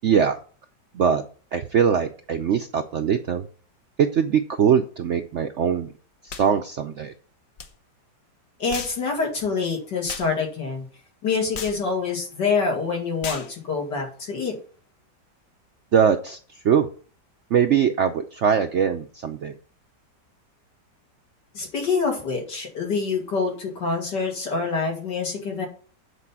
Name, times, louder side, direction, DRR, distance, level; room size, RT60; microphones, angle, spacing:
voice 1, 0.0-0.4 0.9-1.2 1.5-3.4 4.0-5.9 6.2-7.1 15.9-16.4 16.6-16.9 17.5-19.5, right 7 dB, 65° right, 7 dB, 0.7 m, -21 dB
sound 1, 6.3-6.5 7.6-7.7 8.7-9.0 10.1-10.3 11.5-11.8 13.2-13.5, left 6 dB, 55° left, 1.3 m, -34 dB
voice 2, 8.6-10.8 11.2-14.5 21.5-25.7, left 4 dB, 75° left, 0 dB, 3.3 m, -26 dB
8.3 x 4.6 x 7.3 m, 0.40 s
omnidirectional pair, 1.9 m